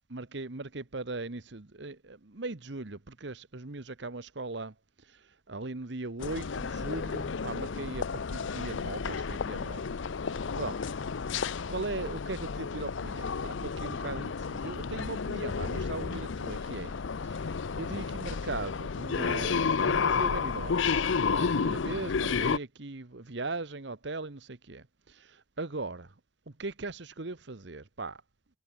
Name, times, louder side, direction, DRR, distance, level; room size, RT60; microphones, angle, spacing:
voice 1, 0.1-9.8 10.3-10.8 11.7-17.0 17.2-20.9 21.3-26.1 26.6-28.2, right 3 dB, 60° right, 1.2 m, -39 dB
sound 1, 6.2-22.6, left 5 dB, 75° left, 0.6 m, -31 dB
head